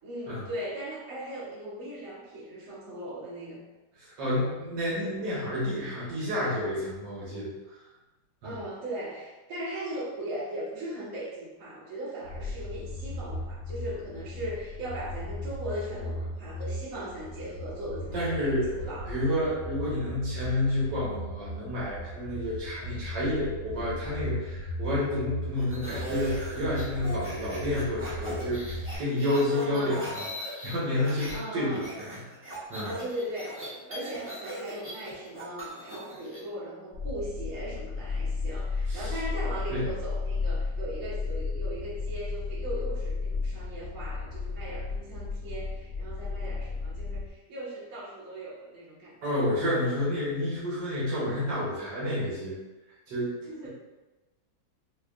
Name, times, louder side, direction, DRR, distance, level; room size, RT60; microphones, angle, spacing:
voice 1, 0.0-3.6 8.4-19.1 29.5-30.0 31.3-31.9 32.8-49.2 53.5-53.7, right 1 dB, 55° right, -9 dB, 1.6 m, -38 dB
voice 2, 4.0-7.5 8.4-8.5 18.1-32.0 32.7-32.9 38.9-39.1 39.7-39.9 49.2-52.6 53.1-53.3 53.6-53.7, left 1 dB, 80° right, -8 dB, 1.7 m, -30 dB
sound 1, 12.2-28.9, equal, 65° left, 1.1 m, -38 dB
sound 2, 25.6-31.4 31.7-36.4, right 1 dB, 15° right, 0.4 m, -40 dB
sound 3, 36.9-47.3, left 4 dB, 40° left, 0.8 m, -33 dB
4.8 x 2.5 x 2.4 m, 1.1 s
omnidirectional pair, 1.9 m